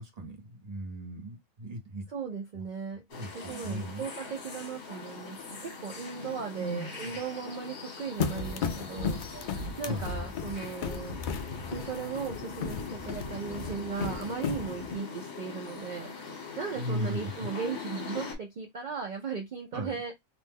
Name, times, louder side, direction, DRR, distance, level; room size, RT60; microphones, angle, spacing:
voice 1, 0.0-2.1 2.5-2.6 3.1-4.0 6.6-7.1 9.9-10.1 16.7-17.3 19.7-19.9, equal, 35° right, 0.7 m, -37 dB
voice 2, 2.1-3.0 3.3-11.2 11.7-20.1, right 6 dB, 80° right, 0.4 m, -37 dB
sound 1, 3.1-18.3, left 4 dB, 55° left, 1.3 m, -42 dB
sound 2, 8.2-15.0, left 5 dB, 90° left, 0.4 m, -35 dB
2.8 x 2.1 x 3.4 m
omnidirectional pair, 1.4 m